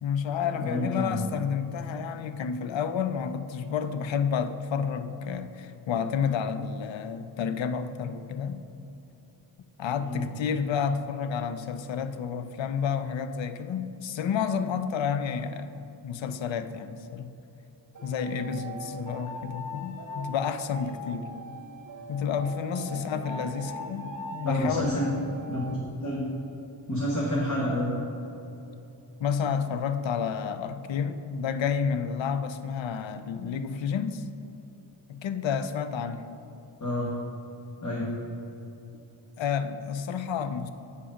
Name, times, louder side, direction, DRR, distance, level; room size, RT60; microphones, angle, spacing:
voice 1, 0.0-8.6 9.8-17.3 18.0-21.3 22.1-25.2 29.2-34.3 35.1-36.2 38.9-39.0 39.4-40.7, left 7 dB, 70° left, 11 dB, 0.6 m, -30 dB
voice 2, 0.6-1.3 10.0-10.2 22.8-23.8 24.4-25.1 25.5-25.6 26.0-26.3 26.9-27.9 36.8-37.1 37.8-38.1, left 1 dB, 35° left, -4 dB, 1.3 m, -30 dB
sound 1, 17.9-25.8, equal, 40° right, 0.8 m, -41 dB
8.4 x 5.0 x 5.0 m, 2.9 s
wide cardioid pair, 80°, 48 cm